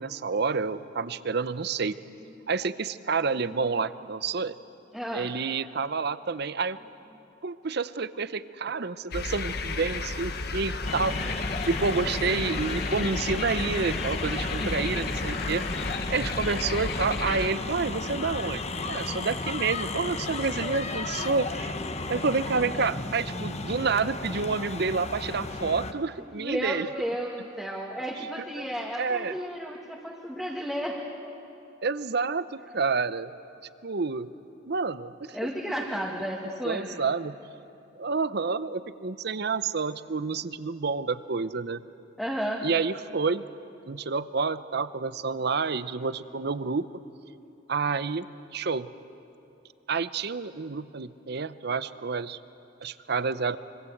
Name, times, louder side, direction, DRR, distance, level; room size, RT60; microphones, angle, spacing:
voice 1, 0.0-2.0 2.5-4.5 5.1-6.8 7.4-21.8 22.1-26.9 28.4-28.5 29.0-29.3 31.8-33.3 33.8-34.3 34.6-35.4 36.6-37.4 38.0-41.8 42.6-43.4 43.9-46.9 47.7-48.3 48.5-48.9 49.9-52.4 52.8-53.6, right 4 dB, 55° right, 14 dB, 0.7 m, -29 dB
voice 2, 4.9-5.3 26.3-31.0 35.3-37.0 42.2-42.6, equal, ahead, -3 dB, 2.0 m, -33 dB
sound 1, 9.1-17.5, left 3 dB, 55° left, 1.3 m, -33 dB
sound 2, 10.8-25.9, left 2 dB, 35° left, 1.1 m, -33 dB
26.0 x 24.0 x 7.9 m, 2.8 s
head